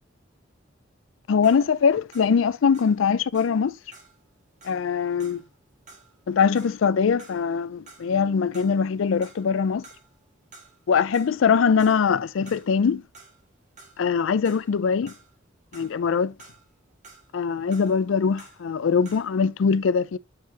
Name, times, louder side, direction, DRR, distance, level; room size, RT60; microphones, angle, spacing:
voice 1, 1.3-3.7 4.6-5.4 6.3-9.8 10.9-13.0 14.0-15.1 15.7-16.3 17.3-20.2, left 6 dB, 80° left, 0.4 m, -22 dB
sound 1, 1.3-8.3 8.5-9.6 9.8-10.9 11.1-19.5, right 3 dB, 40° right, 1.8 m, -52 dB
7.6 x 4.6 x 2.8 m
head